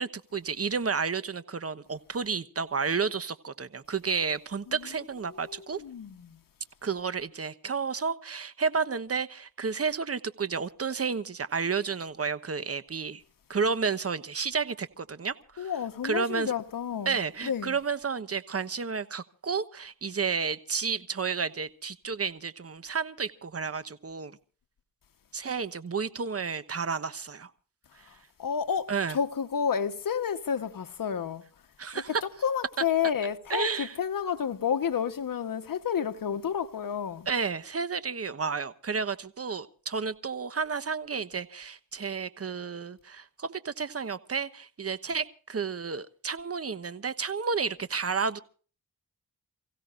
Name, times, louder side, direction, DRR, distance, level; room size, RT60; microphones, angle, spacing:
voice 1, 0.0-5.8 6.8-13.2 13.5-15.7 16.0-16.5 17.1-24.3 25.3-27.5 28.9-29.2 31.8-32.2 33.5-33.9 37.3-48.4, right 5 dB, 40° right, 1.2 m, -31 dB
voice 2, 4.7-5.0 5.3-6.4 15.6-17.8 28.1-31.5 31.9-37.3, left 7 dB, 70° left, 1.3 m, -31 dB
29.0 x 16.0 x 2.6 m
cardioid pair, 65°, 35 cm